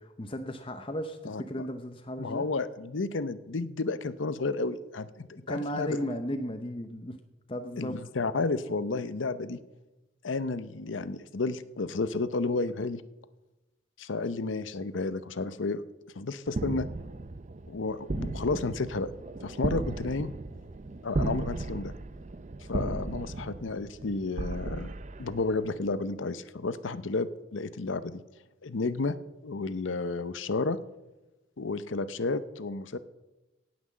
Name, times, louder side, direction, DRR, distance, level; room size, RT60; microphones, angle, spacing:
voice 1, 0.0-2.4 5.5-7.2 7.5-8.0, equal, 25° left, 7 dB, 0.7 m, -35 dB
voice 2, 2.2-6.0 7.8-9.6 10.2-13.0 14.0-15.8 16.2-16.9 17.7-19.1 19.4-20.3 21.0-21.9 22.7-24.9 25.2-28.2 28.6-29.2 29.4-30.8 31.6-33.0, left 3 dB, 80° left, 14 dB, 0.7 m, -32 dB
sound 1, 16.5-25.8, right 2 dB, 35° right, 0.5 m, -36 dB
17.5 x 6.1 x 7.4 m, 1.0 s
head